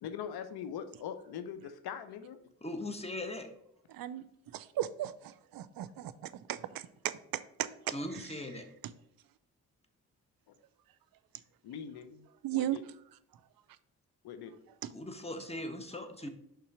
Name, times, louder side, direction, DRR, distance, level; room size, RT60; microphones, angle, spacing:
voice 1, 0.0-2.4 11.6-12.8 14.2-14.6, left 8 dB, 65° left, 9 dB, 0.8 m, -42 dB
voice 2, 2.6-3.5 7.9-8.7 14.9-16.3, left 1 dB, 15° left, 6 dB, 1.1 m, -39 dB
voice 3, 3.9-4.2 4.5-5.1 5.5-6.8 7.6-7.7 12.4-12.8 14.8-14.9, right 13 dB, 60° right, 15 dB, 0.6 m, -35 dB
5.5 x 3.8 x 5.5 m, 0.76 s
hypercardioid pair, 40°, 41 cm